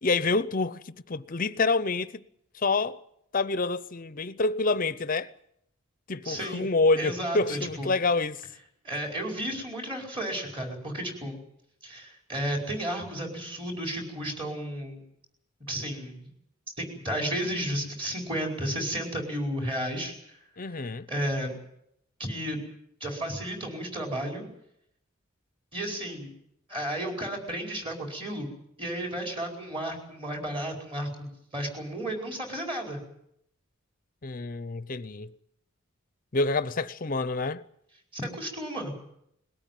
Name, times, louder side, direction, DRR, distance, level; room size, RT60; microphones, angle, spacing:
voice 1, 0.0-2.2 2.5-3.0 3.3-5.3 6.1-8.4 20.6-21.1 34.2-35.3 36.3-37.6, left 3 dB, 40° left, 0.8 m, -27 dB
voice 2, 6.2-6.6 7.0-7.9 8.8-11.4 11.8-15.0 15.6-16.3 16.8-20.1 21.1-21.5 22.2-22.6 23.0-24.5 25.7-26.3 26.7-28.5 28.8-33.0 38.1-38.9, right 1 dB, 25° right, 4.9 m, -33 dB
20.5 x 17.5 x 9.2 m
head